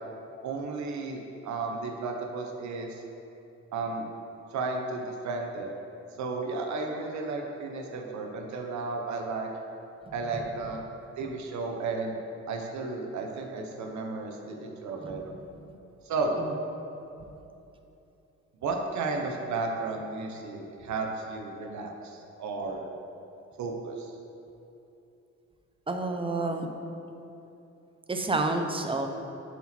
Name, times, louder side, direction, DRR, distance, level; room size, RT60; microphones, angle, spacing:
voice 1, 0.4-3.0 3.7-4.1 4.5-5.7 6.2-9.5 10.1-10.8 11.2-12.2 12.5-15.3 16.0-16.4 18.6-22.9 23.6-24.1, right 3 dB, 70° right, 2 dB, 0.8 m, -33 dB
voice 2, 25.9-26.7 28.1-29.1, right 2 dB, 20° right, 4 dB, 0.7 m, -29 dB
8.0 x 4.4 x 4.3 m, 2.8 s
cardioid pair, 90°, 30 cm